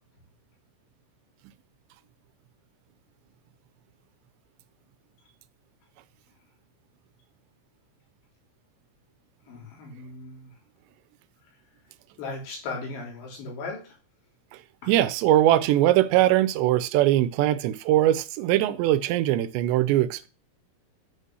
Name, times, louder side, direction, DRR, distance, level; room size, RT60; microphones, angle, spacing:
voice 1, 9.5-10.5 12.2-14.0 14.8-14.9, left 3 dB, 85° left, 5.8 m, -37 dB
voice 2, 14.9-20.3, right 13 dB, 85° right, 2.9 m, -21 dB
9.5 x 5.5 x 6.2 m
omnidirectional pair, 5.0 m